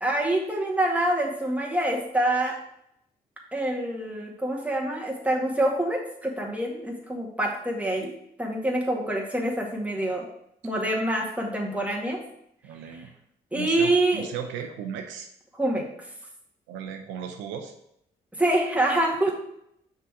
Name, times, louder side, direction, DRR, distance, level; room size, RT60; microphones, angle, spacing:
voice 1, 0.0-2.6 3.5-8.1 8.4-10.2 10.6-12.2 13.5-14.2 15.5-15.9 18.4-19.3, right 1 dB, 5° right, -2 dB, 1.9 m, -26 dB
voice 2, 12.6-13.1 13.5-15.3 16.7-17.7, right 8 dB, 85° right, 5 dB, 0.6 m, -36 dB
5.7 x 3.8 x 4.7 m, 0.76 s
supercardioid pair, 50°, 19 cm